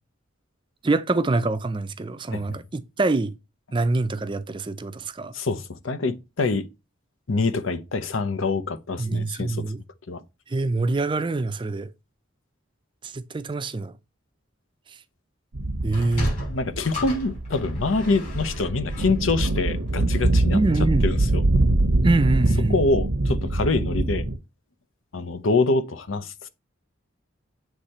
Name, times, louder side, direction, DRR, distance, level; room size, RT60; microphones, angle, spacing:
voice 1, 0.8-3.3 3.7-5.3 9.0-9.8 10.5-11.9 13.1-13.9 15.8-16.3 20.5-21.1 22.0-22.8, right 3 dB, 25° right, 0.4 m, -25 dB
voice 2, 5.3-6.6 7.3-9.7 10.1-10.2 16.5-21.5 22.7-24.2 25.1-26.5, left 3 dB, 75° left, 0.7 m, -25 dB
sound 1, 15.5-24.4, right 2 dB, 90° right, 0.8 m, -24 dB
Sliding door, 15.8-20.4, left 1 dB, 40° left, 4.4 m, -34 dB
8.1 x 3.3 x 4.2 m
head